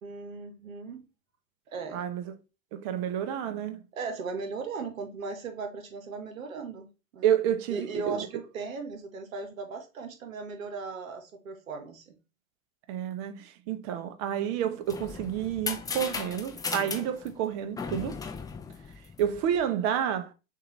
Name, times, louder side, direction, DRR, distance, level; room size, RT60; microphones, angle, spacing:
voice 1, 0.0-1.1 1.7-2.0 4.0-6.9 7.1-7.3 7.7-12.2, right 4 dB, 80° right, 1.2 m, -37 dB
voice 2, 1.9-2.3 2.7-3.8 7.2-8.3 12.9-18.2 19.2-20.3, right 9 dB, 50° right, 0.8 m, -29 dB
sound 1, 14.6-19.6, left 5 dB, 10° left, 0.5 m, -37 dB
6.5 x 2.6 x 3.1 m
hypercardioid pair, 100°, 40 cm